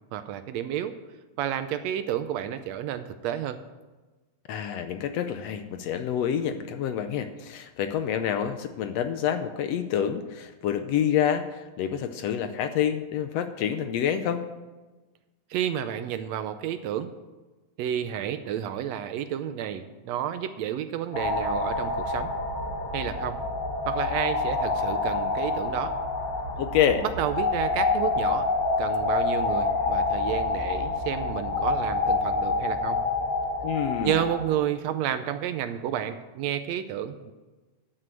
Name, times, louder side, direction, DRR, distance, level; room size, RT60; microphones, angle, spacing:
voice 1, 0.1-1.0 1.4-3.6 15.5-17.1 17.8-22.3 22.9-23.4 23.9-25.9 27.2-28.5 28.8-33.0 34.0-37.3, right 10 dB, 80° right, 10 dB, 1.7 m, -30 dB
voice 2, 4.5-14.5 26.6-27.0 33.6-34.2, left 9 dB, 75° left, 9 dB, 1.6 m, -27 dB
sound 1, 21.1-34.5, left 3 dB, 55° left, 2.9 m, -27 dB
12.5 x 6.7 x 7.5 m, 1.2 s
omnidirectional pair, 3.3 m